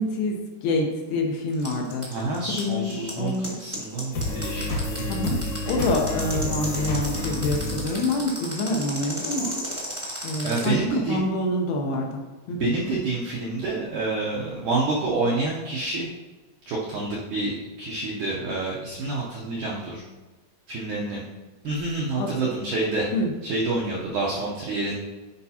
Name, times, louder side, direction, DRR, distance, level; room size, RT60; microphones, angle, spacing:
voice 1, 0.0-2.1 2.6-3.6 5.1-5.4 5.7-9.6 10.2-12.7 22.2-22.3 23.1-23.3, left 2 dB, 75° left, 1 dB, 2.6 m, -27 dB
sound 1, 1.5-10.6, right 1 dB, 40° right, 0.4 m, -34 dB
voice 2, 2.1-3.3 3.6-5.3 10.4-11.2 12.6-16.1 16.7-20.0 20.7-21.2 21.6-23.1 23.4-25.0, right 3 dB, 80° right, -5 dB, 1.8 m, -28 dB
sound 2, 4.1-8.9, left 1 dB, 60° left, 2.1 m, -29 dB
11.0 x 4.6 x 2.8 m, 1.2 s
omnidirectional pair, 4.8 m